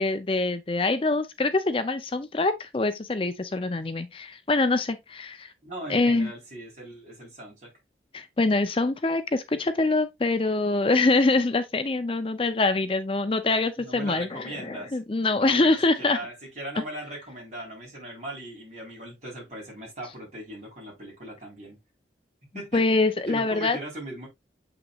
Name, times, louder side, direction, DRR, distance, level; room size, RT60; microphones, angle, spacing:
voice 1, 0.0-5.5 5.9-6.3 8.1-16.2 22.7-23.8, left 3 dB, 30° left, 0.5 m, -24 dB
voice 2, 5.6-7.7 13.8-15.0 15.4-21.8 22.5-22.8 23.3-24.3, right 1 dB, 40° right, 4.1 m, -39 dB
7.3 x 5.9 x 2.4 m
head